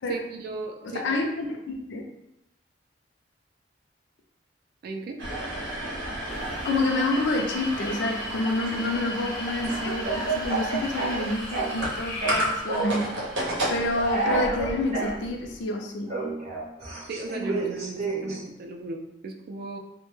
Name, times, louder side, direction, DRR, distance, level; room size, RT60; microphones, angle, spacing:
voice 1, 0.1-1.0 4.8-5.2 17.1-19.8, right 2 dB, 55° right, 3 dB, 0.3 m, -36 dB
voice 2, 0.8-2.0 6.6-13.1 13.7-16.1, left 2 dB, 70° left, 2 dB, 0.4 m, -28 dB
sound 1, 5.2-15.5, right 1 dB, 85° right, 0.8 m, -33 dB
sound 2, 6.3-12.6, left 1 dB, 15° left, 0.6 m, -39 dB
Speech / Cough, 9.6-11.9 12.2-13.0 13.9-15.1 16.1-18.4, right 3 dB, 35° right, 0.7 m, -29 dB
2.1 x 2.1 x 3.0 m, 0.86 s
head